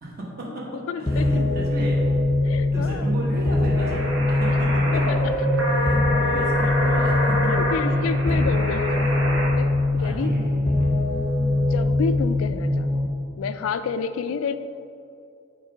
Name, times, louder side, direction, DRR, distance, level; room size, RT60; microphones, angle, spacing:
voice 1, 0.0-2.0 2.7-8.3 8.9-9.3 10.0-10.9, right 1 dB, 45° right, -4 dB, 1.4 m, -34 dB
voice 2, 0.9-1.3 2.4-3.1 4.9-5.5 7.5-9.1 9.5-10.7 11.4-13.0 13.4-14.5, left 6 dB, 85° left, 11 dB, 0.3 m, -30 dB
sound 1, 1.1-13.1, left 2 dB, 30° left, 0.6 m, -22 dB
sound 2, 3.7-9.5, equal, 65° right, 1.0 m, -27 dB
7.2 x 3.1 x 5.0 m, 2.5 s
head